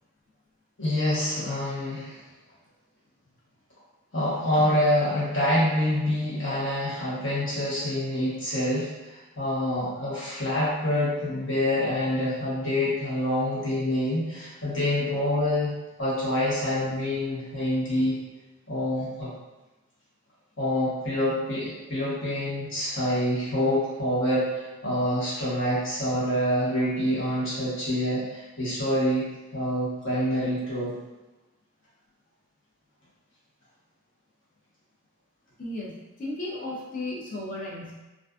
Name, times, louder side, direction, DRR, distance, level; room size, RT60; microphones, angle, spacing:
voice 1, 0.8-2.2 4.1-15.7 16.0-18.2 18.7-19.3 20.6-30.9, left 1 dB, 60° left, -9 dB, 1.0 m, -26 dB
voice 2, 35.6-38.0, left 2 dB, 35° left, -5 dB, 0.5 m, -35 dB
2.4 x 2.3 x 2.3 m, 1.1 s
head